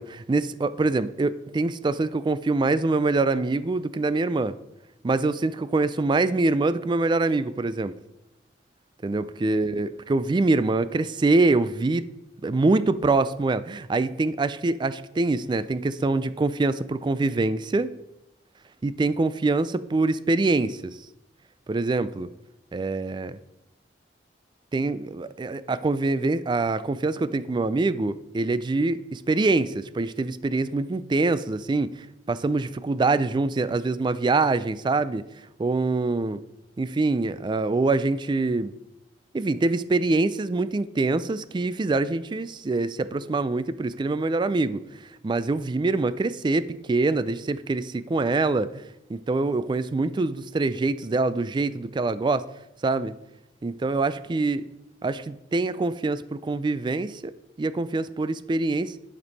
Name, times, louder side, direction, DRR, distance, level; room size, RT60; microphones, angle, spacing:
voice 1, 0.0-4.6 5.0-7.9 9.0-12.0 12.4-17.9 18.8-21.0 21.7-22.3 22.7-23.4 24.7-31.9 32.3-35.2 35.6-36.4 36.8-38.8 39.3-44.8 45.2-48.8 49.1-52.5 52.8-53.1 53.6-54.6 55.0-57.3 57.6-59.0, right 3 dB, 25° right, 15 dB, 0.3 m, -24 dB
10.5 x 5.3 x 4.1 m, 0.88 s
head